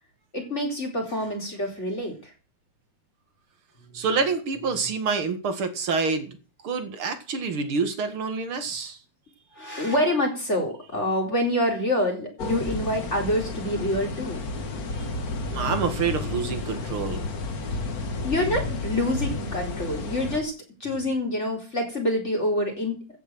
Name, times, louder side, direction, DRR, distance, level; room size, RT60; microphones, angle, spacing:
voice 1, 0.3-2.3 3.9-4.0 9.5-14.4 18.2-20.5 20.8-23.0, left 1 dB, 20° left, 1 dB, 4.4 m, -26 dB
voice 2, 3.9-6.4 6.6-9.0 15.5-17.2, right 5 dB, 50° right, 8 dB, 2.5 m, -27 dB
sound 1, 12.4-20.4, left 3 dB, 40° left, 1.5 m, -31 dB
15.5 x 7.1 x 7.7 m, 0.35 s
omnidirectional pair, 3.3 m